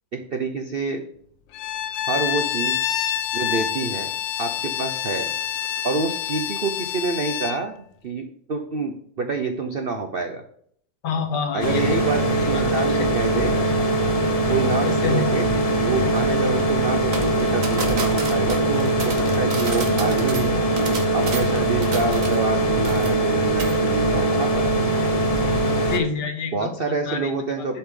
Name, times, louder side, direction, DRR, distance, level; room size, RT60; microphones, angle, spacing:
voice 1, 0.3-1.0 2.1-2.8 3.3-4.1 4.4-5.3 5.8-7.7 8.0-10.4 11.5-13.5 14.5-15.5 15.8-20.6 21.1-24.7 26.5-27.8, right 3 dB, 70° right, 5 dB, 0.5 m, -27 dB
Bowed string instrument, 1.5-7.6, left 10 dB, 80° left, 1.4 m, -27 dB
voice 2, 11.0-11.8 12.5-13.0 14.8-15.2 25.9-26.7 27.1-27.2, left 5 dB, 60° left, 7 dB, 1.7 m, -27 dB
sound 1, 11.6-26.0, right 1 dB, 30° left, 0.7 m, -21 dB
sound 2, 17.1-22.6 22.8-23.3 23.6-23.8, right 4 dB, 45° right, 1.4 m, -33 dB
8.2 x 5.4 x 3.8 m, 0.63 s
omnidirectional pair, 2.1 m